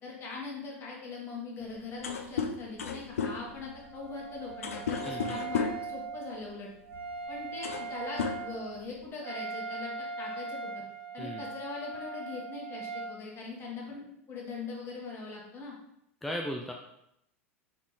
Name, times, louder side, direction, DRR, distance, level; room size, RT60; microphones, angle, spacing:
voice 1, 0.0-6.7 7.3-10.8 11.1-15.8, left 3 dB, 35° left, -2 dB, 1.5 m, -41 dB
sound 1, 1.6-1.7 1.9-5.9 6.9-7.1 7.4-7.9 8.2-9.1, left 6 dB, 80° left, 0.4 m, -34 dB
Wind instrument woodwind instrument, 3.2-13.2, right 4 dB, 35° right, 1.5 m, -40 dB
voice 2, 5.0-5.4 11.2-11.5 16.2-16.7, equal, 5° left, 0 dB, 0.4 m, -36 dB
4.0 x 3.5 x 3.2 m, 0.78 s
hypercardioid pair, 90°, 7 cm